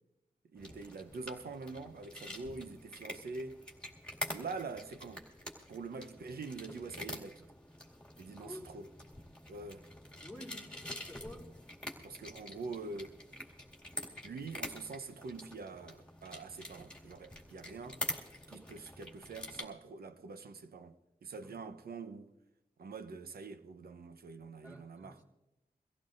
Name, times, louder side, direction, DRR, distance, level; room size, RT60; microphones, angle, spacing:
voice 1, 0.5-3.6 4.3-5.2 5.7-7.5 8.2-8.9 9.5-9.9 12.0-13.2 14.2-18.0 18.5-20.9 21.2-22.3 22.8-25.2, right 4 dB, 85° right, 0.8 m, -45 dB
sound 1, 0.6-19.6, left 1 dB, 5° left, 2.3 m, -46 dB
voice 2, 10.2-10.6 11.1-11.5 21.4-21.7 24.6-25.2, left 1 dB, 10° right, 3.3 m, -49 dB
23.5 x 15.5 x 2.6 m
wide cardioid pair, 75°, 16 cm